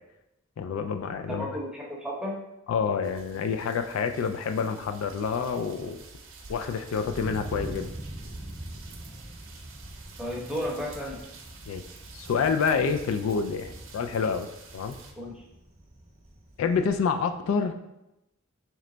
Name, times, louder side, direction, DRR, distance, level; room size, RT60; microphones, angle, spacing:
voice 1, 0.6-1.5 2.7-6.0 6.5-7.9 11.7-11.8 12.1-14.5 14.7-15.0 16.6-17.7, left 5 dB, 85° left, 7 dB, 0.3 m, -27 dB
voice 2, 1.3-2.4 10.2-11.2 15.1-15.4, equal, 5° right, -3 dB, 0.8 m, -33 dB
sound 1, 3.0-15.1, right 3 dB, 70° right, 0.6 m, -49 dB
Thunder, 6.4-17.0, right 1 dB, 35° right, 0.8 m, -44 dB
3.3 x 3.1 x 3.8 m, 0.89 s
head